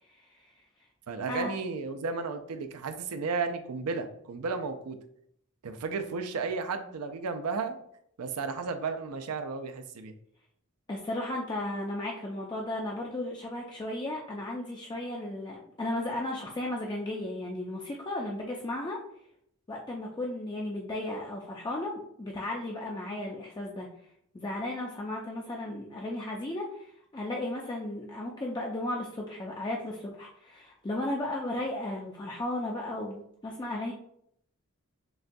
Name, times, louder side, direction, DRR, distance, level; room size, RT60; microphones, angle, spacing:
voice 1, 1.1-5.0 5.6-7.8 8.2-10.1, right 4 dB, 85° right, 8 dB, 0.5 m, -33 dB
voice 2, 10.9-19.0 19.7-23.9 24.3-26.9 27.1-33.9, left 1 dB, 20° left, -2 dB, 0.4 m, -35 dB
6.3 x 2.2 x 2.6 m, 0.71 s
head